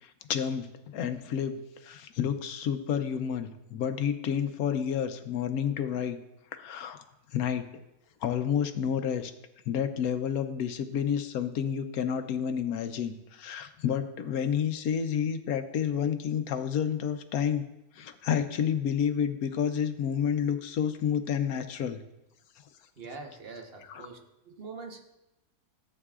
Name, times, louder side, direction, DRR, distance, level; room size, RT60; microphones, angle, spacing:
voice 1, 0.0-6.2 6.5-7.0 7.3-7.6 8.2-9.3 9.7-17.6 18.0-22.0 23.9-24.0, left 8 dB, 70° left, 9 dB, 1.2 m, -30 dB
voice 2, 23.0-24.2 24.4-25.0, right 4 dB, 40° right, 3 dB, 1.2 m, -43 dB
14.0 x 8.4 x 2.4 m, 0.93 s
omnidirectional pair, 1.6 m